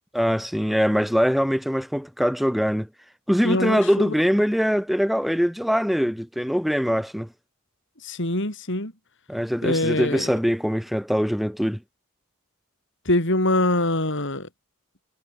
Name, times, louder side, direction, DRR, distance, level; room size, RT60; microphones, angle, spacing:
voice 1, 0.1-2.9 3.3-7.3 9.3-11.8, equal, ahead, 5.3 m, -22 dB
voice 2, 3.4-4.1 8.0-8.9 9.6-10.3 13.1-14.5, left 1 dB, 55° left, 6.2 m, -24 dB
head